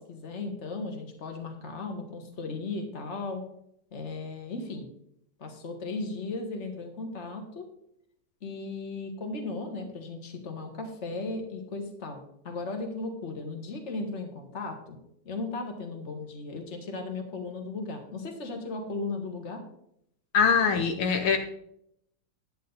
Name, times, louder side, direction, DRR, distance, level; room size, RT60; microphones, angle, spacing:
voice 1, 0.0-3.4 3.9-4.9 5.4-7.7 8.4-15.0 15.3-19.6, left 3 dB, 35° left, 4 dB, 1.8 m, -36 dB
voice 2, 20.3-21.4, left 6 dB, 75° left, 5 dB, 1.7 m, -23 dB
10.0 x 9.4 x 4.0 m, 0.73 s
omnidirectional pair, 2.3 m